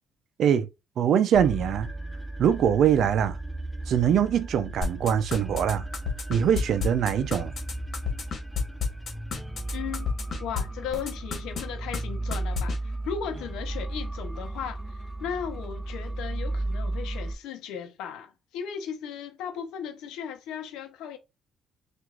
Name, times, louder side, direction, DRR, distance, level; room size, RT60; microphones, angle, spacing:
voice 1, 1.0-1.9 2.4-3.4 3.9-5.9 6.3-7.5, right 8 dB, 65° right, 0.5 m, -23 dB
sound 1, 1.3-17.3, right 2 dB, 5° right, 0.7 m, -35 dB
sound 2, 4.8-10.6 10.9-11.6 11.9-12.0 12.3-12.8, left 7 dB, 50° left, 1.5 m, -30 dB
voice 2, 9.7-10.1 10.4-21.2, left 7 dB, 85° left, 0.8 m, -36 dB
6.0 x 2.6 x 2.4 m
cardioid pair, 100°, 0 cm